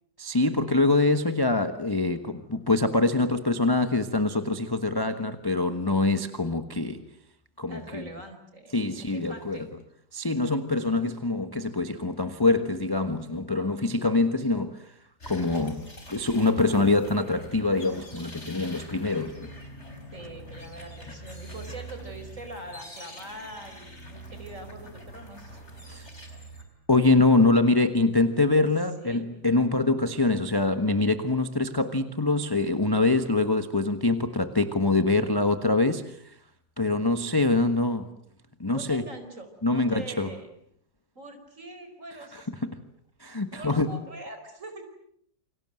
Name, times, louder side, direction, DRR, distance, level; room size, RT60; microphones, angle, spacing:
voice 1, 0.2-7.0 7.6-8.1 8.7-9.6 10.1-14.8 15.3-19.5 25.9-26.1 26.9-36.2 36.8-38.1 38.6-39.0 39.6-40.3 42.3-42.7 43.2-44.0, left 2 dB, 15° left, 9 dB, 1.2 m, -24 dB
voice 2, 7.7-9.6 20.1-25.6 28.6-28.7 29.0-29.2 38.7-40.5 41.1-42.5 43.5-44.8, right 2 dB, 40° right, 7 dB, 5.0 m, -43 dB
sound 1, 15.2-26.6, equal, 35° left, 4.8 m, -44 dB
29.0 x 25.5 x 7.8 m, 0.67 s
omnidirectional pair, 2.0 m